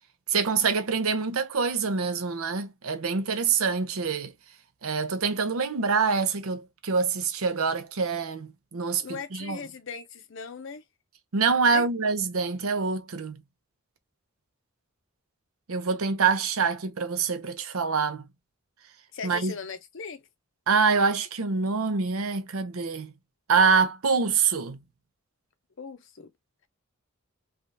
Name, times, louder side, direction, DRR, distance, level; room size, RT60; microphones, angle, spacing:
voice 1, 0.3-4.3 4.8-9.6 11.3-13.4 15.7-18.3 19.2-19.5 20.7-23.1 23.5-24.8, right 5 dB, 80° right, 0.7 m, -25 dB
voice 2, 9.0-10.8 11.7-11.9 19.1-20.2 25.8-26.3, left 5 dB, 60° left, 0.6 m, -38 dB
3.4 x 2.3 x 2.6 m
head